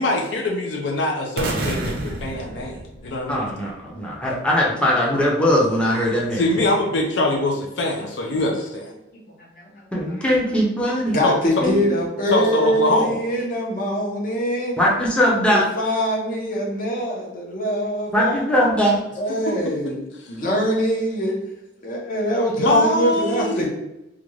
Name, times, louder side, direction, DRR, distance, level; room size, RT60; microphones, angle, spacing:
voice 1, 0.0-3.5 6.3-8.9 11.2-11.4 12.3-13.3 19.5-19.6 22.6-23.7, left 1 dB, 70° left, 0 dB, 0.4 m, -23 dB
sound 1, 1.4-3.5, right 2 dB, 55° right, 0.5 m, -28 dB
voice 2, 3.3-6.5 9.9-11.2 11.6-11.8 14.8-15.7 18.1-19.0, equal, 5° left, -4 dB, 0.5 m, -20 dB
voice 3, 3.8-4.2 9.6-9.8 11.1-14.8 15.5-18.5 19.2-20.0 20.3-21.4 21.8-23.7, equal, 50° left, -1 dB, 0.7 m, -23 dB
2.4 x 2.2 x 3.1 m, 0.90 s
head